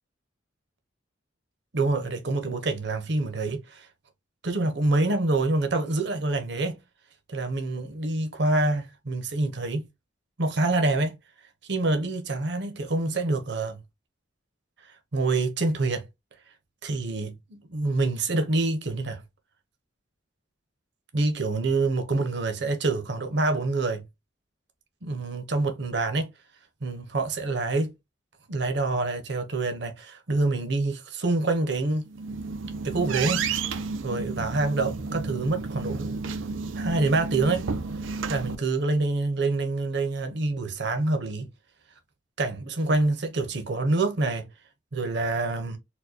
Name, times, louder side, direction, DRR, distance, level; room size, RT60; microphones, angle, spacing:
voice 1, 1.7-3.9 4.4-6.8 7.3-9.8 10.4-11.2 11.7-13.8 15.1-16.0 16.8-19.2 21.1-24.0 25.0-26.3 26.8-27.9 28.5-32.1 32.8-33.4 34.0-36.1 36.7-37.7 38.3-41.5 42.4-44.5 44.9-45.8, right 2 dB, 60° right, 0.8 m, -26 dB
sound 1, 32.1-38.6, right 4 dB, 90° right, 0.5 m, -31 dB
4.4 x 2.2 x 2.8 m
head